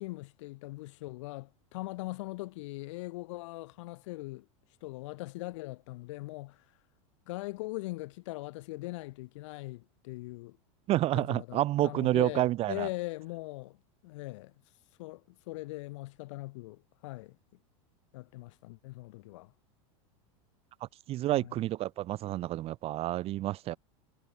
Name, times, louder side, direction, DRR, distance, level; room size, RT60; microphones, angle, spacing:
voice 1, 0.0-4.5 4.8-6.6 7.3-10.6 11.1-13.8 14.0-14.5 15.0-17.4 18.1-19.5 21.3-21.5, left 21 dB, 65° left, 4.5 m, -41 dB
voice 2, 10.9-12.9 21.1-23.8, right 15 dB, 35° right, 2.4 m, -29 dB
supercardioid pair, 145°, 17 cm